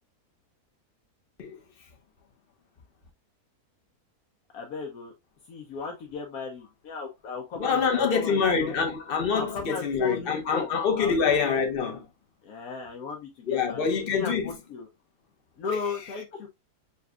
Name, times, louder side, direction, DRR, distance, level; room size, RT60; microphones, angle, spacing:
voice 1, 4.5-5.1 5.5-8.7 9.3-10.7 11.0-11.2 12.4-14.9 15.6-16.5, left 4 dB, 75° left, 1.3 m, -36 dB
voice 2, 7.5-12.0 13.5-14.5, left 6 dB, 40° left, 1.0 m, -25 dB
6.8 x 2.5 x 2.2 m
omnidirectional pair, 1.6 m